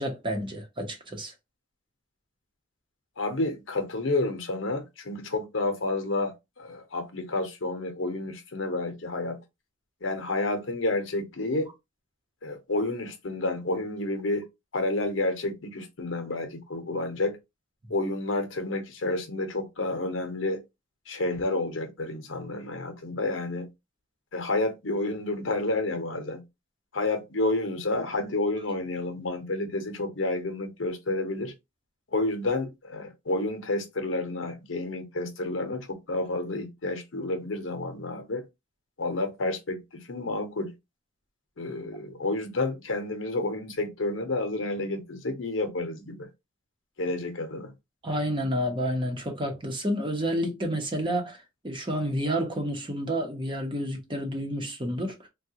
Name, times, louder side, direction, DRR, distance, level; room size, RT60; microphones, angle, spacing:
voice 1, 0.0-1.3 48.0-55.2, equal, 25° right, 0.8 m, -30 dB
voice 2, 3.2-9.4 10.0-11.7 12.4-14.4 14.7-17.4 17.9-20.6 21.1-23.7 24.3-26.4 26.9-31.5 32.1-38.4 39.0-40.7 41.6-46.3 47.0-47.7, left 2 dB, 80° left, 0.9 m, -30 dB
3.5 x 2.3 x 2.8 m
head